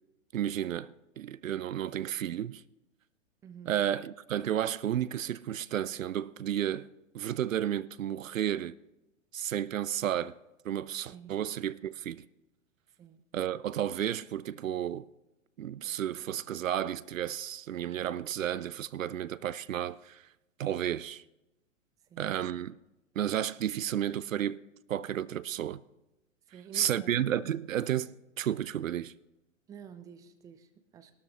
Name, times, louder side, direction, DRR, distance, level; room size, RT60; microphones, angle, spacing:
voice 1, 0.3-2.6 3.7-8.7 9.3-10.3 10.6-12.2 13.3-15.1 15.6-20.2 20.6-21.2 22.2-22.8 23.2-24.6 24.9-25.8 26.7-29.1, right 10 dB, 80° right, 0.5 m, -32 dB
voice 2, 3.4-3.8 11.1-11.3 13.0-13.2 22.1-22.3 26.5-27.1 29.7-31.1, right 8 dB, 10° right, 0.4 m, -49 dB
20.0 x 12.5 x 2.9 m
figure-of-eight pair, 110°, 39 cm